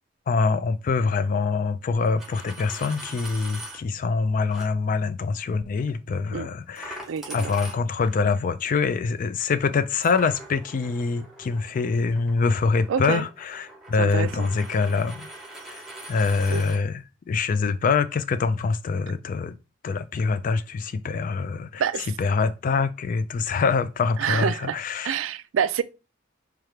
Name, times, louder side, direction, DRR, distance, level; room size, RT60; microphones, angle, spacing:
voice 1, 0.3-7.0 7.3-15.3 16.1-19.5 19.8-21.8 22.2-25.2, left 4 dB, 45° left, 0.3 m, -25 dB
Coin (dropping), 2.0-3.8 4.5-4.7 6.8-8.2 10.0-16.8, right 1 dB, ahead, 0.8 m, -42 dB
voice 2, 7.1-7.6 12.9-13.3 14.0-14.5 16.5-16.6 21.8-22.1 24.2-24.8 25.0-25.8, right 7 dB, 90° right, 0.4 m, -27 dB
3.3 x 2.4 x 4.4 m
head